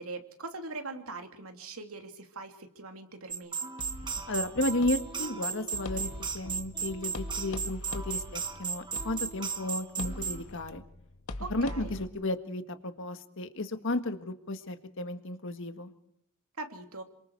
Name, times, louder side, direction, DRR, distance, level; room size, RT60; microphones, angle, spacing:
voice 1, 0.0-3.6 11.4-11.9 16.6-17.0, right 3 dB, 75° right, 5 dB, 2.8 m, -41 dB
Happy guitar, 3.3-10.4, right 6 dB, 20° right, 1.4 m, -36 dB
sound 1, 3.8-12.1, left 1 dB, 75° left, 1.8 m, -42 dB
voice 2, 4.3-10.8 11.5-15.9, left 1 dB, 60° left, 8 dB, 1.7 m, -33 dB
28.0 x 25.0 x 4.7 m, 0.75 s
head